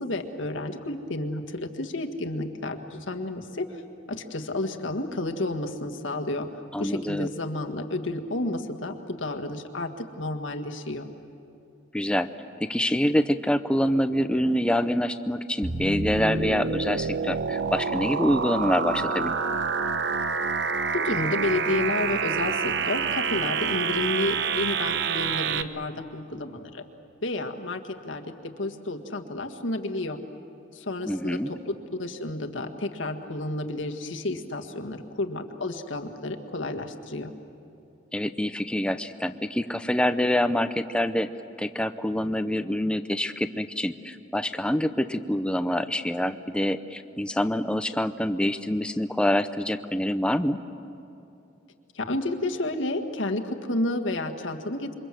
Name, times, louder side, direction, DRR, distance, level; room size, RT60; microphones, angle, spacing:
voice 1, 0.0-3.8 4.1-6.5 6.8-11.1 20.9-26.8 27.2-30.2 30.7-37.3 52.0-54.9, left 2 dB, 80° left, 4 dB, 1.7 m, -31 dB
voice 2, 6.7-7.3 11.9-12.3 12.6-19.3 31.0-31.5 38.1-41.3 41.6-50.6, equal, 5° left, 9 dB, 0.7 m, -26 dB
sound 1, 15.6-25.6, right 5 dB, 60° right, 0.9 m, -27 dB
27.5 x 24.0 x 7.6 m, 2.8 s
head